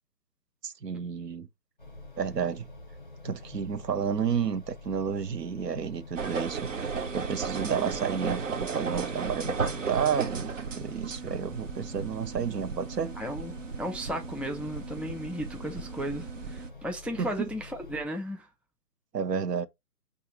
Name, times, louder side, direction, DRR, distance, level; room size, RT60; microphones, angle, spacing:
voice 1, 0.6-1.5 2.2-2.7 3.2-13.1 17.2-17.5 19.1-19.7, right 7 dB, 85° right, 0.8 m, -31 dB
sound 1, 1.8-18.1, left 2 dB, 30° left, 0.7 m, -47 dB
sound 2, 6.1-16.7, right 5 dB, 55° right, 0.6 m, -35 dB
voice 2, 13.2-18.5, equal, 5° right, 0.3 m, -35 dB
4.8 x 2.4 x 2.9 m
hypercardioid pair, 170°, 47 cm